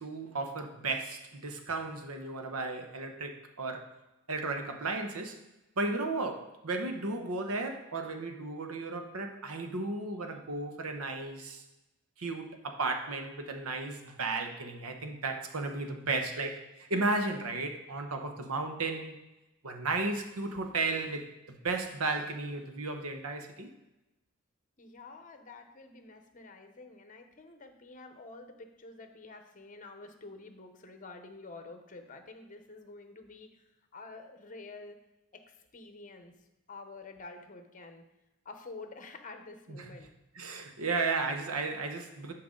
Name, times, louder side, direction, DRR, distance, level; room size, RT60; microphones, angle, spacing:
voice 1, 0.0-3.9 4.3-5.4 5.8-11.6 12.2-19.2 19.6-23.7 39.7-39.8 40.3-42.3, right 3 dB, 80° right, 1.0 m, -34 dB
voice 2, 24.8-35.0 35.3-36.4 36.7-38.0 38.4-40.1, left 3 dB, 40° left, 0.9 m, -49 dB
11.0 x 4.7 x 3.8 m
head